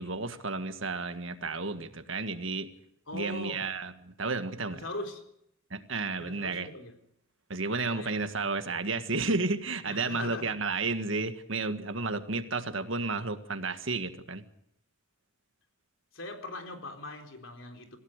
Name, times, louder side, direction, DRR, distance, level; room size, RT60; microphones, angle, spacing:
voice 1, 0.0-2.7 3.1-4.8 5.7-6.7 7.5-14.4, right 3 dB, 65° right, 9 dB, 1.8 m, -32 dB
voice 2, 3.1-3.7 4.7-5.2 6.2-7.0 7.8-8.2 9.9-10.6 16.1-18.0, left 2 dB, 70° left, 4 dB, 3.9 m, -41 dB
26.5 x 16.5 x 6.6 m, 0.75 s
head